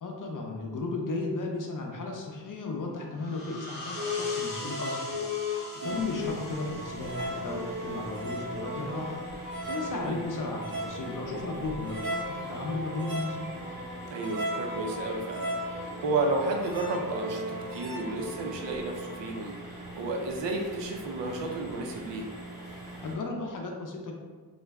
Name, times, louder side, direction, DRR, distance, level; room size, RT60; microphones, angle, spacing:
voice 1, 0.0-5.2 5.5-13.4 23.0-24.2, left 3 dB, 50° left, 1 dB, 0.5 m, -35 dB
sound 1, 3.1-8.5, left 2 dB, 80° left, 0.9 m, -43 dB
sound 2, 3.9-19.3, left 1 dB, 30° right, 0.6 m, -36 dB
sound 3, 5.8-23.2, right 1 dB, 10° left, 0.7 m, -43 dB
voice 2, 5.8-6.1 9.9-10.2 14.1-22.3, right 2 dB, 80° right, 1 dB, 0.6 m, -32 dB
2.4 x 2.1 x 3.4 m, 1.5 s
wide cardioid pair, 105°, 42 cm